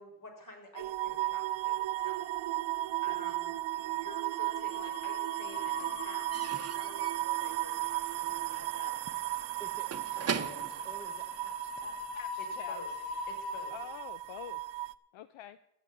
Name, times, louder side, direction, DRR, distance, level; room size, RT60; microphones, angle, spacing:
voice 1, 0.0-2.3 3.0-9.0 10.2-10.8 12.4-12.9 13.3-13.8, left 1 dB, 40° left, 3 dB, 4.0 m, -50 dB
sound 1, 0.8-14.9, right 16 dB, 65° right, 0.6 m, -35 dB
sound 2, 1.6-2.4 2.7-3.0 4.1-13.7, left 10 dB, 90° left, 1.0 m, -45 dB
Slam / Squeak / Wood, 4.1-4.9 5.1-11.9, right 6 dB, 30° right, 0.9 m, -42 dB
voice 2, 9.6-12.2, right 1 dB, 5° left, 7 dB, 1.0 m, -52 dB
voice 3, 12.1-12.8 13.7-14.6 15.1-15.6, left 12 dB, 70° left, 14 dB, 0.7 m, -46 dB
13.5 x 6.8 x 7.9 m, 0.82 s
cardioid pair, 100°, 49 cm